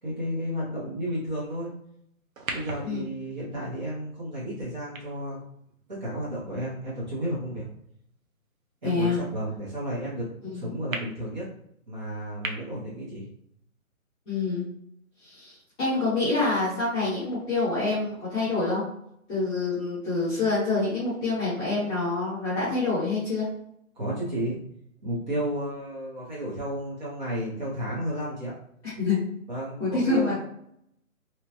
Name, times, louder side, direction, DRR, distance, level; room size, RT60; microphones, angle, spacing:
voice 1, 0.0-1.7 2.5-5.4 5.9-7.7 8.8-10.3 10.5-11.4 11.9-13.3 24.0-24.6 25.0-28.5 29.5-30.3, equal, 30° right, -6 dB, 0.9 m, -32 dB
sound 1, 2.3-6.8 7.4-7.5 10.9-11.0 12.4-12.5, right 3 dB, 70° right, 0.7 m, -40 dB
voice 2, 8.8-9.2 10.5-10.7 14.2-14.6 15.2-15.5 15.8-18.8 19.3-23.5 29.0-29.2 29.8-30.3, left 3 dB, 10° left, -12 dB, 1.0 m, -26 dB
2.9 x 2.3 x 2.9 m, 0.72 s
figure-of-eight pair, 150°, 43 cm